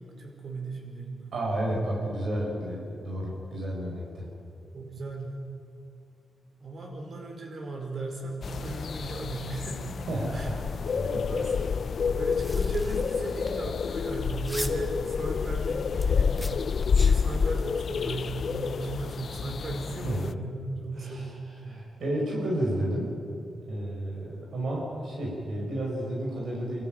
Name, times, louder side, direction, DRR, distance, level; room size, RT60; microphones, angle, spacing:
voice 1, 0.0-1.3 4.7-5.4 6.6-10.0 10.3-10.5 11.0-11.7 12.1-16.5 17.0-21.4, right 2 dB, 55° right, 2 dB, 4.8 m, -36 dB
voice 2, 1.3-4.3 10.1-10.6 11.0-11.7 12.1-12.3 20.0-20.2 21.0-21.3 21.6-23.1 23.7-26.8, right 1 dB, 75° right, -3 dB, 5.7 m, -31 dB
sound 1, 8.4-20.3, left 6 dB, 60° left, 0.4 m, -29 dB
sound 2, 12.2-17.7, left 1 dB, 5° left, 1.6 m, -39 dB
25.5 x 14.0 x 9.2 m, 2.5 s
cardioid pair, 95°, 0 cm